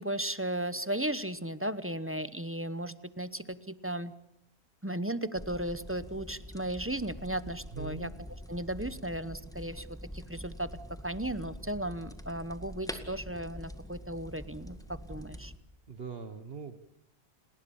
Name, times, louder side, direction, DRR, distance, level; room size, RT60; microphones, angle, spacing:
voice 1, 0.0-4.1 4.8-8.1 8.5-9.9 10.1-10.7 11.0-15.5, right 1 dB, 15° right, 14 dB, 0.8 m, -35 dB
sound 1, 5.3-15.6, equal, 5° left, 1.9 m, -45 dB
voice 2, 7.7-8.1 15.9-16.8, right 5 dB, 60° right, 10 dB, 1.5 m, -41 dB
29.5 x 20.0 x 7.1 m, 0.79 s
omnidirectional pair, 1.2 m